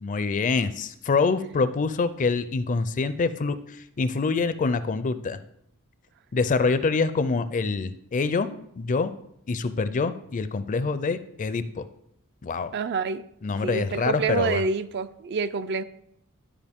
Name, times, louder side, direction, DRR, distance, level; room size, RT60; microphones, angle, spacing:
voice 1, 0.0-3.6 4.0-5.4 6.3-8.5 8.8-9.1 9.5-11.8 12.4-12.7 13.4-14.6, left 4 dB, 35° left, 13 dB, 0.4 m, -25 dB
voice 2, 12.7-13.2 13.6-15.8, right 4 dB, 50° right, 12 dB, 0.4 m, -27 dB
12.0 x 4.9 x 3.6 m, 0.75 s
head